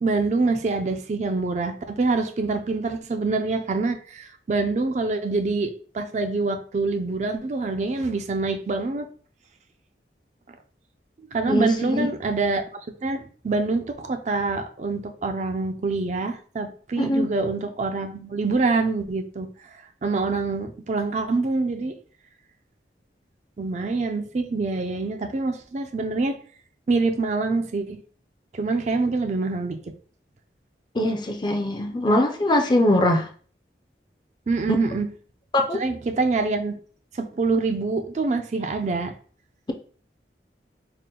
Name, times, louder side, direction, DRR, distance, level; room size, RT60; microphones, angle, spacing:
voice 1, 0.0-9.1 11.3-12.6 13.0-19.5 20.0-22.0 23.6-26.4 26.9-28.0 28.5-29.8 34.5-35.1 35.7-36.8 37.1-39.1, right 3 dB, 40° right, 0.4 m, -25 dB
voice 2, 11.5-12.1 17.0-17.3 31.0-33.3 35.5-35.8, left 1 dB, 25° left, 0.4 m, -22 dB
4.1 x 2.1 x 3.7 m
head